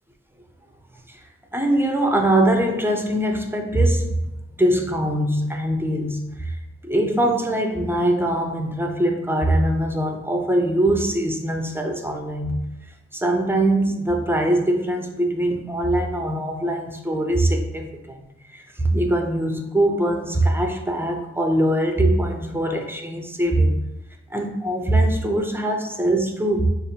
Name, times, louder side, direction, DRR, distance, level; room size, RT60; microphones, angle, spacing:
voice 1, 1.5-4.2 4.6-6.5 6.8-12.6 13.1-18.2 18.5-23.8 24.3-26.7, right 1 dB, 10° right, 3 dB, 0.3 m, -22 dB
5.0 x 2.4 x 2.7 m, 0.93 s
wide cardioid pair, 160°, 29 cm